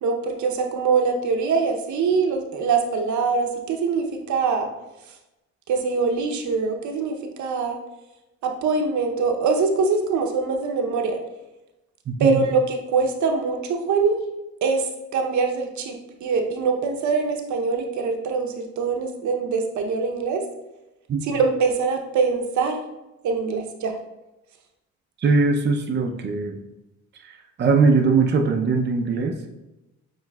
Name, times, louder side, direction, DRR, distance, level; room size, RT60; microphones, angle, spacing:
voice 1, 0.0-4.7 5.7-7.8 8.4-11.2 12.2-14.2 14.6-20.4 21.2-22.8 23.2-23.9, right 4 dB, 70° right, 4 dB, 0.7 m, -23 dB
voice 2, 12.1-12.5 21.1-21.2 25.2-26.6 27.2-29.5, right 4 dB, 35° right, 2 dB, 0.5 m, -21 dB
7.2 x 3.1 x 2.2 m, 0.97 s
cardioid pair, 90°, 30 cm